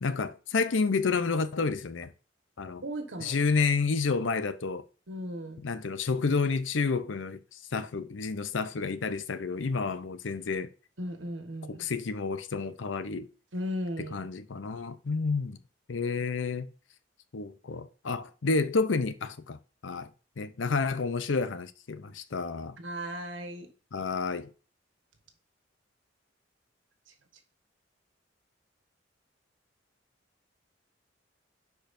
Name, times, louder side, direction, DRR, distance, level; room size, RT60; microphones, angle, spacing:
voice 1, 0.0-2.1 2.6-2.8 3.2-4.8 5.6-10.7 11.7-13.3 14.1-15.6 15.9-16.7 17.3-19.6 19.8-20.1 20.4-22.8 23.9-24.5, left 4 dB, 80° left, 0.6 m, -30 dB
voice 2, 2.8-3.4 5.1-5.6 11.0-11.8 13.5-14.2 22.8-23.7, equal, 90° right, 1.5 m, -36 dB
10.0 x 4.7 x 2.6 m
head